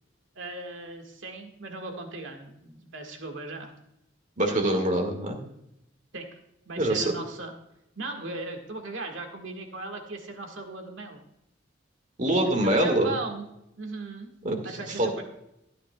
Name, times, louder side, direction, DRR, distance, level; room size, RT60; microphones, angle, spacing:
voice 1, 0.4-3.7 6.1-6.2 6.7-7.5 8.0-11.2 12.6-13.4 13.8-14.3 14.6-15.2, right 2 dB, 75° right, 3 dB, 1.7 m, -37 dB
voice 2, 4.4-5.4 6.8-7.1 12.2-13.2 14.4-15.2, right 1 dB, 40° right, 3 dB, 1.9 m, -25 dB
15.0 x 9.8 x 2.3 m, 0.82 s
head